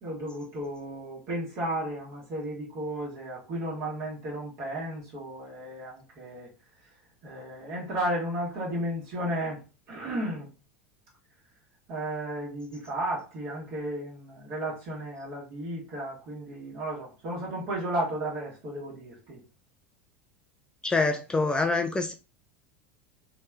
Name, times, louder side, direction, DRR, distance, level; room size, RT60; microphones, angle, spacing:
voice 1, 0.0-6.5 6.8-9.6 9.9-10.5 11.9-19.4, right 1 dB, 45° right, 1.2 m, -34 dB
voice 2, 20.8-22.1, left 3 dB, 10° left, 0.3 m, -25 dB
3.2 x 2.8 x 2.3 m
figure-of-eight pair, 80°, 7 cm